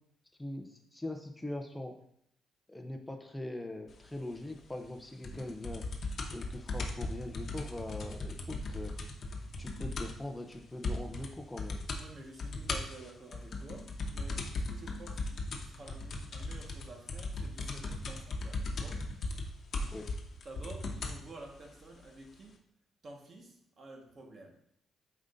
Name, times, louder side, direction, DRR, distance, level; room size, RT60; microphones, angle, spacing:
voice 1, 0.4-1.9 2.7-5.8 6.3-8.9 9.6-11.8 19.9-20.1, left 1 dB, 10° left, 3 dB, 0.7 m, -41 dB
sound 1, 5.2-10.3 10.5-10.6 10.8-11.3 11.6-12.0 12.4-21.2 22.0-22.1, left 2 dB, 55° left, 1.0 m, -37 dB
voice 2, 12.0-19.4 20.4-22.6 23.0-24.5, right 2 dB, 45° right, 1 dB, 1.5 m, -51 dB
7.9 x 5.0 x 2.7 m, 0.70 s
cardioid pair, 90°, 0 cm